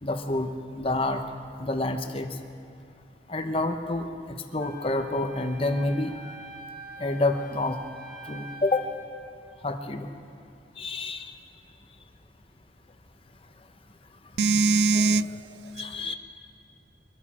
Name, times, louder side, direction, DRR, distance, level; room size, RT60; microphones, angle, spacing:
voice 1, 0.0-1.2 1.6-2.3 3.3-4.1 4.5-6.3 7.0-7.8 8.3-8.9 9.6-10.1 10.8-11.3 14.9-16.2, left 2 dB, 30° left, 6 dB, 0.9 m, -28 dB
Wind instrument woodwind instrument, 4.6-9.0, equal, 10° right, 2.9 m, -45 dB
voice 2, 14.4-15.3 16.1-16.2, right 3 dB, 65° right, 16 dB, 0.3 m, -21 dB
23.5 x 11.5 x 4.3 m, 2.6 s
head